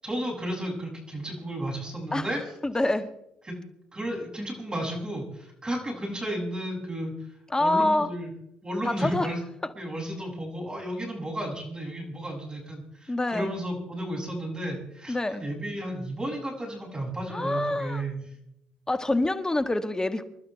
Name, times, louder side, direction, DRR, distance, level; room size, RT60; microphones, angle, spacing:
voice 1, 0.0-2.4 3.4-3.6 3.9-7.1 7.6-8.3 8.6-9.4 9.8-18.2, right 1 dB, 20° right, 0 dB, 7.6 m, -33 dB
voice 2, 2.6-3.1 7.5-8.1 8.9-9.3 13.1-13.5 15.1-15.5 17.3-18.0 18.9-20.2, left 2 dB, 20° left, 9 dB, 1.7 m, -26 dB
27.5 x 12.0 x 3.5 m, 0.79 s
hypercardioid pair, 60°, 4 cm